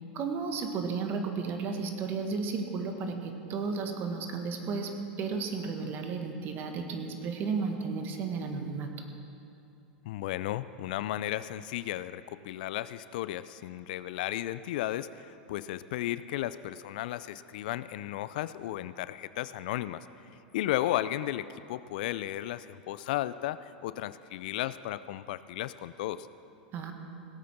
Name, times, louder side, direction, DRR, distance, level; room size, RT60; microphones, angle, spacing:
voice 1, 0.1-4.9 5.2-8.9 26.7-26.9, right 4 dB, 40° right, 5 dB, 1.7 m, -33 dB
voice 2, 10.1-20.1 20.5-26.3, left 14 dB, 65° left, 15 dB, 0.4 m, -34 dB
18.0 x 8.4 x 5.9 m, 2.6 s
hypercardioid pair, 95°, 5 cm